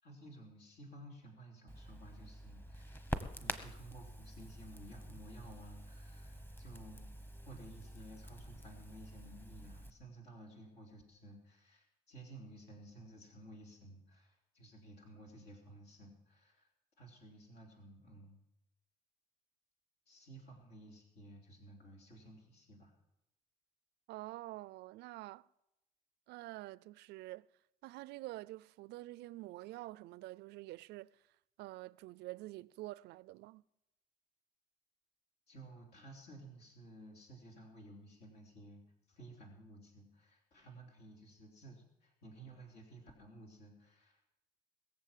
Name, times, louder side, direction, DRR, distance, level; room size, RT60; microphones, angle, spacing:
voice 1, 0.0-3.1 3.4-7.1 7.4-16.7 17.0-18.4 20.1-22.9 35.5-38.8 39.1-44.2, right 1 dB, 75° left, 3.7 m, -55 dB
Crackle, 1.7-9.9, equal, 10° left, 1.2 m, -47 dB
voice 2, 24.1-25.5 26.3-27.5 27.8-31.2 31.6-33.6, right 18 dB, 80° right, 0.4 m, -47 dB
21.0 x 7.3 x 7.5 m
cardioid pair, 110°, 17 cm